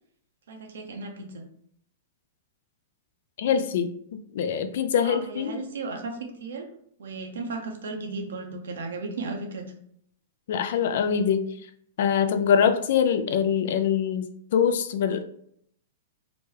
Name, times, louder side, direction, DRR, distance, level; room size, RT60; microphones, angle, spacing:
voice 1, 0.5-1.4 5.0-6.7 7.0-9.7, right 3 dB, 80° right, 3 dB, 0.6 m, -35 dB
voice 2, 3.4-5.6 10.5-11.4 12.0-15.2, left 7 dB, 65° left, 8 dB, 0.3 m, -24 dB
2.9 x 2.2 x 3.2 m, 0.67 s
hypercardioid pair, 130°, 0 cm